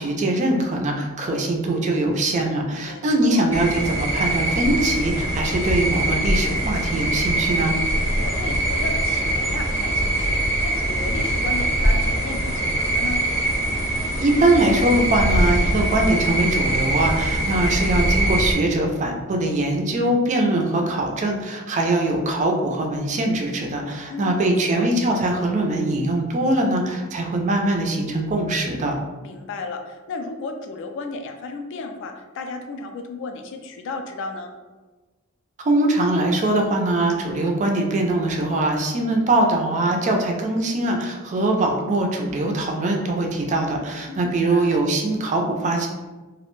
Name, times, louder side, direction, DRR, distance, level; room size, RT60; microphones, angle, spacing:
voice 1, 0.0-7.8 14.2-28.9 35.6-45.9, right 1 dB, 35° right, 2 dB, 0.3 m, -22 dB
voice 2, 2.7-3.5 7.9-13.2 24.1-24.9 29.2-34.5 44.1-44.8, left 3 dB, 60° left, 4 dB, 0.3 m, -34 dB
sound 1, 3.5-18.5, right 1 dB, 10° left, 0.7 m, -22 dB
2.3 x 2.1 x 3.0 m, 1.2 s
head